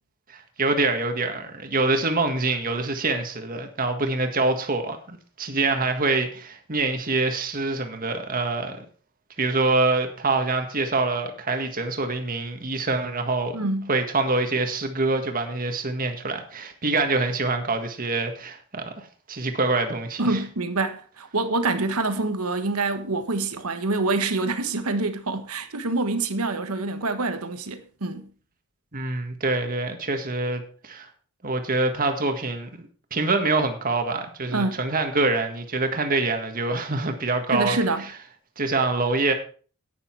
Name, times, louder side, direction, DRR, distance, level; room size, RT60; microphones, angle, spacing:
voice 1, 0.3-8.8 9.4-13.6 13.9-20.4 28.9-31.1 31.4-37.8 38.6-39.3, right 3 dB, 40° right, 1.7 m, -25 dB
voice 2, 13.5-13.9 20.2-28.2 34.5-34.8 37.5-38.0, right 3 dB, 85° right, 1.3 m, -26 dB
10.5 x 9.7 x 4.6 m
head